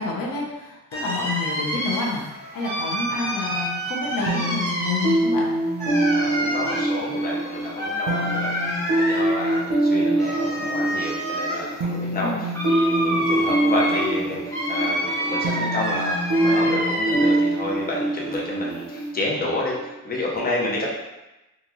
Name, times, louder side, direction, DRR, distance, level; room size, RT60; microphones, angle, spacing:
voice 1, 0.0-2.2 2.5-5.5 12.2-12.4, left 3 dB, 90° left, -2 dB, 0.8 m, -29 dB
sound 1, 0.9-17.6 17.9-19.1, equal, 10° left, 1.0 m, -28 dB
sound 2, 4.3-19.8, right 1 dB, 70° right, 0.7 m, -24 dB
voice 2, 6.1-8.5 8.9-20.9, left 1 dB, 25° left, -4 dB, 0.7 m, -30 dB
3.8 x 2.5 x 2.9 m, 0.99 s
wide cardioid pair, 155°, 33 cm